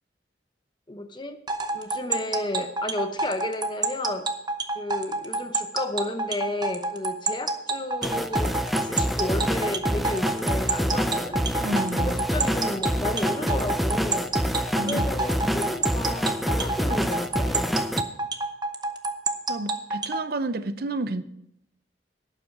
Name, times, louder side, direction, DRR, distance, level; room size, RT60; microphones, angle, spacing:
voice 1, 0.9-1.4 1.7-4.3 4.7-8.5 8.8-11.4 12.0-14.3 14.8-17.8, left 1 dB, 25° left, 0.8 m, -32 dB
sound 1, 1.5-20.2, right 3 dB, 25° right, 0.8 m, -28 dB
sound 2, 8.0-18.0, equal, ahead, 0.5 m, -27 dB
voice 2, 11.6-12.2 14.8-15.1 19.5-21.2, right 2 dB, 55° right, 0.6 m, -30 dB
12.0 x 9.1 x 5.4 m
head